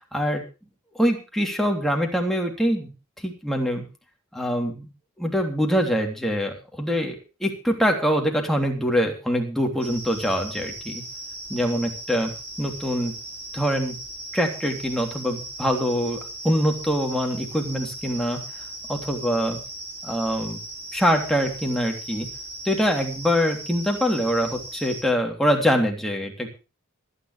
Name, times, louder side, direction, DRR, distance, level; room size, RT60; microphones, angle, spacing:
voice 1, 0.1-0.4 1.0-3.8 4.3-4.9 5.2-11.0 11.5-12.3 12.6-13.1 13.5-14.0 14.3-18.4 18.9-19.6 20.0-20.6 20.9-22.3 22.6-26.6, equal, ahead, 1 dB, 3.0 m, -24 dB
sound 1, 9.8-25.0, right 2 dB, 30° right, 6.2 m, -38 dB
25.5 x 9.9 x 3.2 m, 0.31 s
head